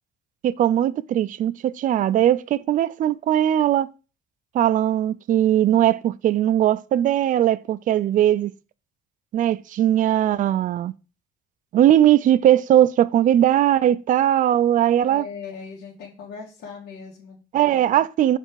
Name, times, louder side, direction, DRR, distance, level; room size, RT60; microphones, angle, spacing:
voice 1, 0.4-3.9 4.5-8.5 9.3-10.9 11.7-15.2 17.5-18.4, right 11 dB, 50° right, 0.4 m, -19 dB
voice 2, 15.0-17.4, left 5 dB, 90° left, 2.1 m, -39 dB
6.6 x 4.4 x 4.7 m
cardioid pair, 110°, 17 cm